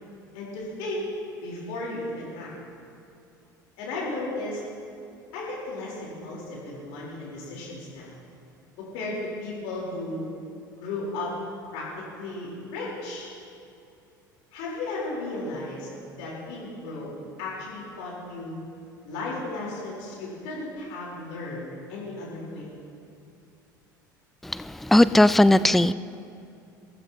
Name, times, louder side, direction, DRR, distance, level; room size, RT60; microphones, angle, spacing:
voice 1, 0.3-1.1 1.4-2.5 3.8-4.6 5.3-8.1 8.8-10.3 10.7-11.3 11.7-13.3 14.5-15.9 16.2-17.1 17.4-18.6 19.0-22.7, left 2 dB, 60° left, -5 dB, 4.1 m, -35 dB
voice 2, 24.4-25.9, left 1 dB, ahead, 16 dB, 0.3 m, -18 dB
23.0 x 15.0 x 3.0 m, 2.6 s
figure-of-eight pair, 65°, 11 cm